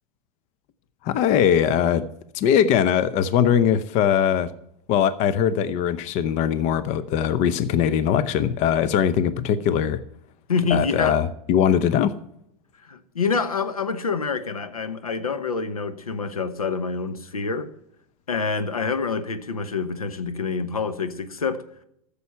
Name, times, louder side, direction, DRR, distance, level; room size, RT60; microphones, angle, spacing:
voice 1, 1.0-2.0 2.3-4.5 4.9-10.0 10.7-12.1, left 9 dB, 40° left, 0.7 m, -21 dB
voice 2, 10.5-11.2 12.9-17.7 18.3-21.6, left 5 dB, 85° left, 1.0 m, -26 dB
13.5 x 7.0 x 5.7 m
figure-of-eight pair, 90°, 18 cm